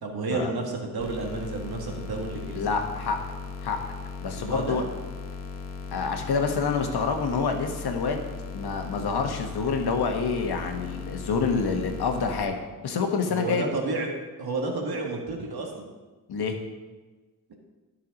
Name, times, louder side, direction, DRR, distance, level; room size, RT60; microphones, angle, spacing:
voice 1, 0.0-2.6 4.3-4.8 13.3-14.1 14.4-15.9 17.5-17.6, right 3 dB, 75° right, 1 dB, 1.8 m, -31 dB
sound 1, 1.0-12.4, left 5 dB, 40° left, 1.0 m, -38 dB
voice 2, 2.5-3.2 3.6-3.8 4.2-4.8 5.9-8.2 8.5-13.6 16.3-16.6, left 5 dB, 85° left, 4 dB, 1.3 m, -27 dB
11.5 x 5.7 x 5.3 m, 1.3 s
cardioid pair, 90°, 38 cm